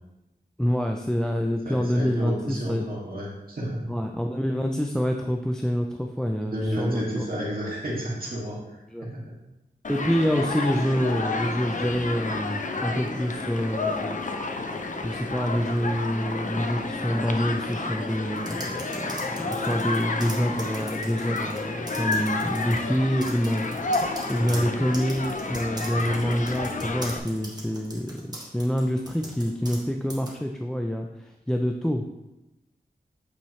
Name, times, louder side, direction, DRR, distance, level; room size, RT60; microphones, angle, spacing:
voice 1, 0.6-2.8 3.9-7.3 8.9-9.1 9.9-14.1 15.0-18.9 19.5-32.0, equal, 5° left, 3 dB, 0.5 m, -27 dB
voice 2, 1.7-3.9 6.4-9.3 24.4-24.7 29.2-29.3, equal, 60° right, -5 dB, 2.2 m, -32 dB
Human group actions, 9.8-27.2, left 3 dB, 50° left, 0.6 m, -30 dB
sound 1, 18.4-21.6 21.9-22.8 23.2-29.8 30.1-30.3, right 1 dB, 25° right, 1.6 m, -40 dB
8.6 x 4.4 x 3.2 m, 0.97 s
wide cardioid pair, 75°, 17 cm